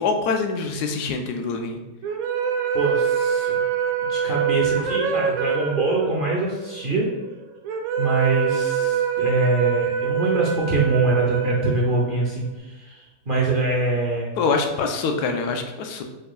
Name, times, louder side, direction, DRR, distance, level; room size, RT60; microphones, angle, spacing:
voice 1, 0.0-1.8 14.4-16.0, left 4 dB, 85° left, 5 dB, 1.2 m, -24 dB
sound 1, 2.0-12.4, right 8 dB, 70° right, 1.0 m, -25 dB
voice 2, 2.7-3.6 4.0-7.1 8.0-14.3, right 2 dB, 50° right, -4 dB, 0.7 m, -24 dB
4.9 x 4.7 x 2.3 m, 1.1 s
omnidirectional pair, 1.7 m